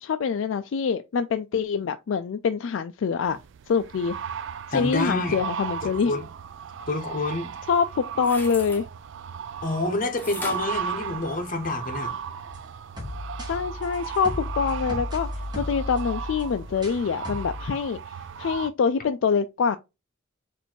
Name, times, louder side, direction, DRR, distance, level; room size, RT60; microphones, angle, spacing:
voice 1, 0.0-3.4 3.7-4.2 4.7-6.1 7.7-8.8 13.5-15.3 15.6-18.0 18.4-19.8, left 6 dB, 65° left, 0.3 m, -25 dB
sound 1, 3.2-18.7, right 7 dB, 65° right, 0.3 m, -36 dB
voice 2, 4.7-5.4 5.8-6.3 6.9-7.6 9.6-12.1, left 2 dB, 40° left, 0.9 m, -28 dB
sound 2, 8.1-8.8 10.2-11.7 12.2-12.3, left 2 dB, 10° left, 1.0 m, -39 dB
sound 3, 12.5-17.0 17.3-17.7, left 1 dB, 20° right, 1.3 m, -35 dB
4.3 x 2.6 x 4.3 m
head